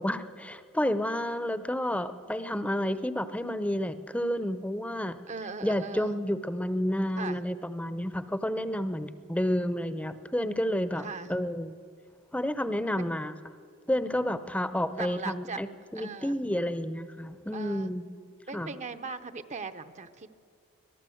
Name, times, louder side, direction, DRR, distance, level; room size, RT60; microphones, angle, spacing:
voice 1, 0.0-5.2 5.6-11.8 12.3-13.4 13.9-18.1 18.5-18.7, equal, 5° left, 12 dB, 0.7 m, -30 dB
voice 2, 5.3-6.1 7.2-7.4 11.0-11.3 12.9-13.1 15.0-15.6 15.9-16.4 17.5-17.9 18.5-20.3, right 4 dB, 30° right, 11 dB, 0.8 m, -39 dB
24.5 x 18.5 x 7.9 m, 2.3 s
head